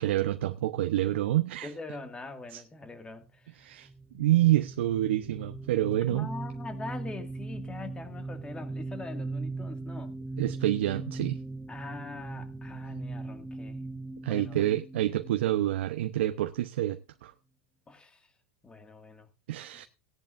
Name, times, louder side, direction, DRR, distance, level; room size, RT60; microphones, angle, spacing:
voice 1, 0.0-1.7 2.5-2.6 3.6-3.9 4.1-6.3 10.4-11.4 14.2-17.3 19.5-19.8, right 14 dB, 75° right, 0.9 m, -27 dB
voice 2, 1.6-3.7 6.0-10.1 11.7-13.8 14.2-14.6 17.9-18.3 18.6-19.3, left 3 dB, 15° left, 2.1 m, -43 dB
sound 1, 3.9-16.3, right 3 dB, 5° right, 1.0 m, -39 dB
18.0 x 10.5 x 2.6 m
hypercardioid pair, 115°, 6 cm